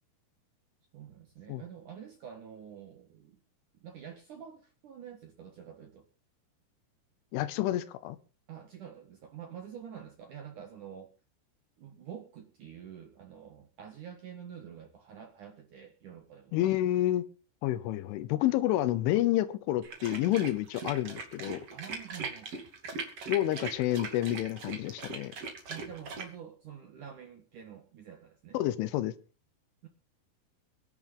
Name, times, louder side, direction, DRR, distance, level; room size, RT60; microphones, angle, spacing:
voice 1, 0.9-3.4 3.8-6.1 8.5-11.1 11.8-16.5 21.7-22.5 25.7-28.6 29.8-29.9, right 8 dB, 60° right, 5 dB, 2.2 m, -47 dB
voice 2, 7.3-8.2 16.5-17.2 17.6-21.6 23.3-25.3 28.5-29.1, left 14 dB, 80° left, 15 dB, 3.2 m, -29 dB
sound 1, 19.8-26.3, right 4 dB, 40° right, 2.8 m, -40 dB
23.5 x 11.0 x 3.8 m, 0.36 s
omnidirectional pair, 5.8 m